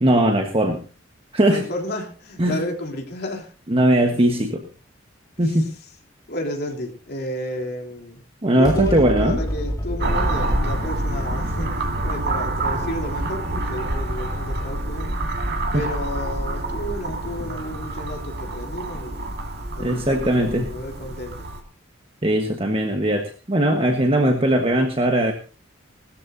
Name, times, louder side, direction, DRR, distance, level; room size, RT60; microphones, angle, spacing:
voice 1, 0.0-0.8 1.3-1.7 2.4-2.6 3.7-4.6 5.4-5.6 8.4-9.4 15.7-15.9 19.8-20.7 22.2-25.3, right 1 dB, 30° right, 3 dB, 1.4 m, -19 dB
voice 2, 1.5-3.5 4.2-4.3 5.4-5.7 6.3-8.2 8.6-15.2 15.7-19.3 19.8-21.5, left 1 dB, 55° left, 1 dB, 3.4 m, -32 dB
sound 1, 8.6-15.3, equal, 20° left, 2.0 m, -31 dB
sound 2, 10.0-21.6, right 1 dB, 55° right, 1.9 m, -27 dB
20.0 x 13.5 x 2.8 m, 0.37 s
head